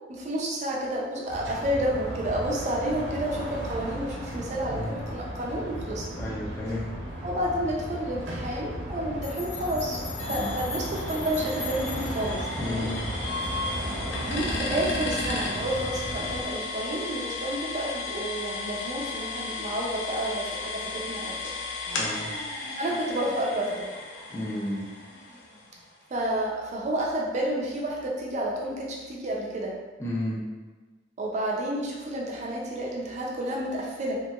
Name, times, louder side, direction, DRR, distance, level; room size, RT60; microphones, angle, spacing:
voice 1, 0.1-6.2 7.2-12.9 14.2-21.3 22.8-23.9 26.1-29.7 31.2-34.2, right 1 dB, 40° right, -3 dB, 0.4 m, -30 dB
sound 1, 1.3-16.4, right 1 dB, 75° right, 0.7 m, -35 dB
voice 2, 6.2-6.9 10.3-10.5 12.6-13.0 22.0-22.3 24.3-24.9 30.0-30.4, left 1 dB, 15° left, -6 dB, 0.5 m, -32 dB
sound 2, 9.2-12.4, left 4 dB, 40° left, 1.2 m, -40 dB
sound 3, 10.2-25.9, left 3 dB, 70° left, 0.5 m, -35 dB
2.9 x 2.7 x 2.3 m, 1.3 s
head